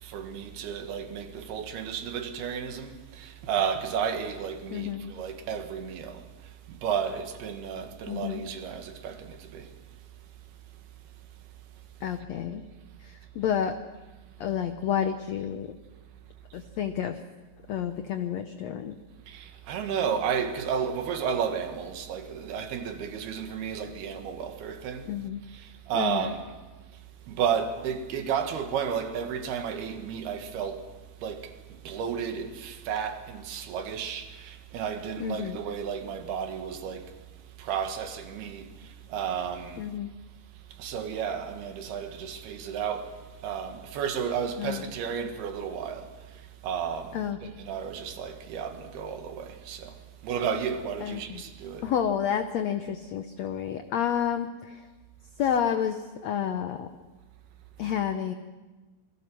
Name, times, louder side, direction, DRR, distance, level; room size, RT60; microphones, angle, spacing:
voice 1, 0.0-6.3 6.7-9.7 19.3-25.1 25.5-26.5 27.3-30.9 31.2-37.1 37.6-39.9 40.8-46.1 46.6-50.0 50.2-51.9, right 7 dB, 85° right, 3.6 m, -32 dB
voice 2, 4.7-5.0 8.1-8.4 12.0-12.6 13.0-13.8 14.4-15.7 16.5-17.2 17.7-18.9 25.1-25.4 25.9-26.3 35.2-35.6 39.8-40.1 44.6-44.9 47.1-47.4 51.0-51.4 51.8-54.8 55.4-56.9 57.8-58.3, left 9 dB, 90° left, 1.5 m, -30 dB
26.5 x 22.0 x 6.2 m
omnidirectional pair, 4.4 m